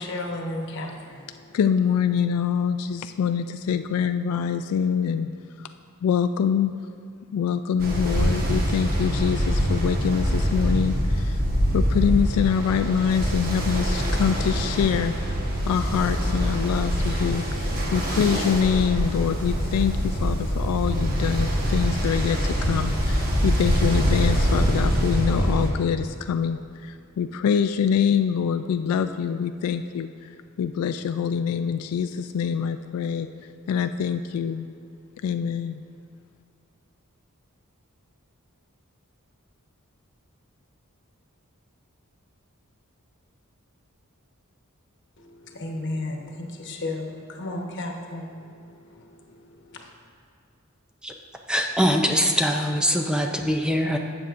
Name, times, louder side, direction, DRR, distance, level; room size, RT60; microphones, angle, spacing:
voice 1, 0.0-1.6 45.2-49.9, left 2 dB, 55° left, 1 dB, 1.1 m, -34 dB
voice 2, 1.5-5.3 6.0-6.7 7.3-11.4 11.7-15.1 15.7-30.3 30.6-33.3 33.7-34.7 35.2-35.8, left 7 dB, 85° left, 11 dB, 0.3 m, -25 dB
Ocean, 7.8-25.7, equal, 45° right, 1.3 m, -24 dB
voice 3, 51.5-54.0, equal, 5° right, 3 dB, 0.4 m, -22 dB
12.5 x 8.0 x 2.5 m, 2.5 s
head